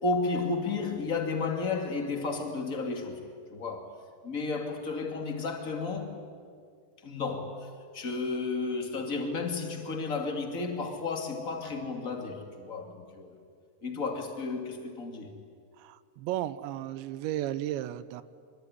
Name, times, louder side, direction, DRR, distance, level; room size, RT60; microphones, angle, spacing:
voice 1, 0.0-3.2 3.5-3.9 4.2-6.1 7.0-7.7 7.9-13.3 13.8-15.3, left 4 dB, 25° left, 3 dB, 2.4 m, -32 dB
voice 2, 15.8-18.2, right 13 dB, 85° right, 15 dB, 3.1 m, -34 dB
24.5 x 24.5 x 9.9 m, 2.1 s
omnidirectional pair, 5.1 m